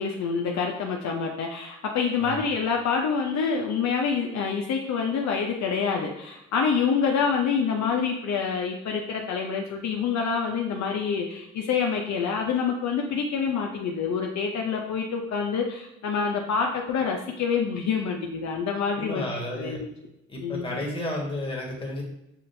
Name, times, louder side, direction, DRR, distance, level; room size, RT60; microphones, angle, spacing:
voice 1, 0.0-19.2 19.5-19.8 20.4-20.8, left 6 dB, 65° left, 1 dB, 0.7 m, -27 dB
voice 2, 19.0-19.8 20.3-22.0, left 1 dB, 20° left, -2 dB, 1.6 m, -32 dB
7.4 x 2.5 x 2.7 m, 0.87 s
cardioid pair, 90°, 30 cm